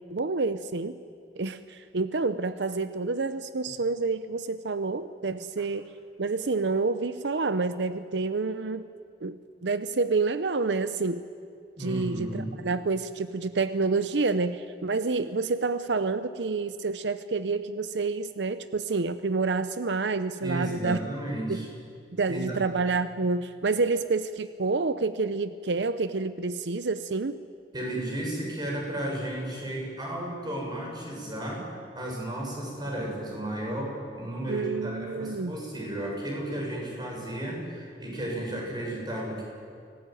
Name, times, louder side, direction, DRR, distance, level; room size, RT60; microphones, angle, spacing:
voice 1, 0.1-1.0 1.4-5.9 6.2-8.9 9.2-11.3 11.8-21.0 21.5-21.6 22.2-27.4 34.5-35.6, right 3 dB, 85° right, 12 dB, 0.7 m, -28 dB
voice 2, 11.8-12.5 20.4-21.7 22.3-22.6 27.7-31.7 31.9-39.4, right 1 dB, 25° right, -1 dB, 6.9 m, -33 dB
25.0 x 18.0 x 9.2 m, 2.3 s
head